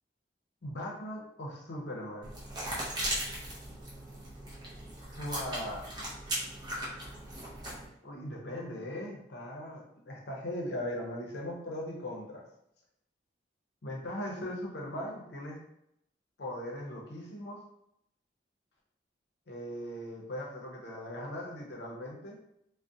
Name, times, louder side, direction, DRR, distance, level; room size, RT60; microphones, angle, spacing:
voice 1, 0.6-2.3 5.0-5.8 8.0-12.4 13.8-15.6 16.4-17.6 19.5-22.4, left 1 dB, 65° left, -2 dB, 0.6 m, -39 dB
sound 1, 2.2-7.9, right 1 dB, 25° right, 0.5 m, -38 dB
2.4 x 2.1 x 2.6 m, 0.79 s
head